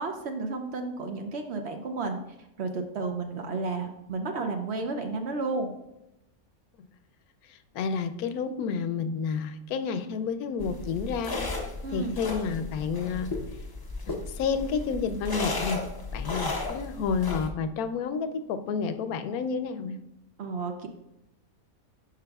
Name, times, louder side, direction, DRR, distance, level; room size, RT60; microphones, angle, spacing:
voice 1, 0.0-2.2 2.6-5.7 11.8-12.1 20.4-20.9, right 3 dB, 60° right, 5 dB, 0.7 m, -32 dB
voice 2, 7.5-11.4 11.9-13.3 14.1-15.8 16.1-20.0, left 5 dB, 90° left, 10 dB, 1.1 m, -30 dB
sound 1, 10.6-17.5, left 3 dB, 40° left, 0.3 m, -34 dB
10.5 x 5.0 x 2.3 m, 0.88 s
omnidirectional pair, 1.5 m